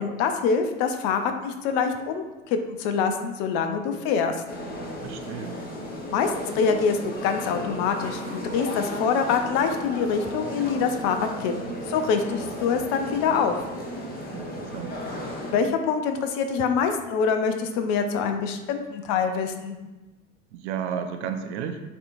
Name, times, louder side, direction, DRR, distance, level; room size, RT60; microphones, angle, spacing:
voice 1, 0.0-4.4 6.1-11.5 11.9-13.6 15.5-19.8, left 6 dB, 45° left, 6 dB, 0.6 m, -25 dB
sound 1, 4.5-15.5, equal, 20° left, 1.0 m, -34 dB
voice 2, 5.0-5.6 14.3-15.0 20.5-21.8, right 7 dB, 55° right, 7 dB, 0.5 m, -33 dB
6.7 x 2.8 x 2.6 m, 1.1 s
figure-of-eight pair, 80°, 42 cm